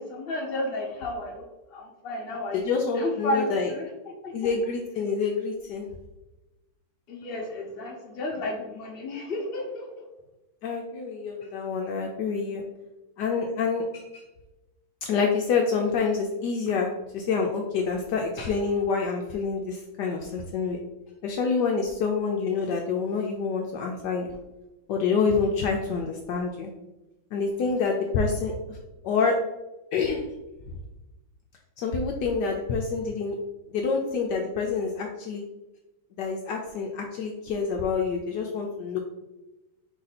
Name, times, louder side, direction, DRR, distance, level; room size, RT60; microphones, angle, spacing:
voice 1, 0.0-2.7 3.0-3.9 4.2-4.5 7.1-10.0, left 1 dB, 40° left, -1 dB, 0.9 m, -32 dB
voice 2, 2.5-3.7 4.3-5.9 10.6-12.6 13.2-14.2 15.1-20.8 21.2-24.3 24.9-26.7 27.3-28.8 29.0-29.4 29.9-30.3 30.7-30.8 31.8-33.4 33.7-35.4 36.2-39.0, left 5 dB, 75° left, 1 dB, 1.1 m, -27 dB
4.6 x 2.7 x 4.0 m, 1.0 s
omnidirectional pair, 2.1 m